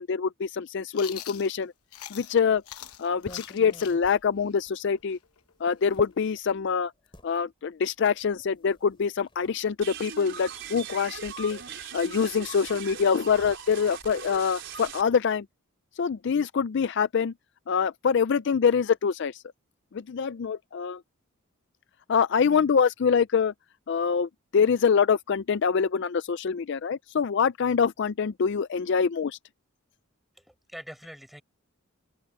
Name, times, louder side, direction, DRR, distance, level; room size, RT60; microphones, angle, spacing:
voice 1, 0.0-1.7 2.1-2.6 3.0-5.2 5.6-6.9 7.2-11.6 11.9-15.4 16.0-17.3 17.7-19.4 19.9-21.0 22.1-23.5 23.9-29.4, left 6 dB, 50° left, 0.4 m, -25 dB
Chewing mastication, 0.9-2.4 2.7-6.3, left 12 dB, 85° left, 1.0 m, -43 dB
sound 1, 2.0-7.3 8.2-9.6 10.8-10.9 11.2-12.4 12.6-14.9, left 1 dB, 25° left, 3.0 m, -48 dB
sound 2, 9.8-15.0, right 7 dB, 55° right, 5.2 m, -40 dB
voice 2, 30.3-31.4, equal, ahead, 5.6 m, -44 dB
open air
head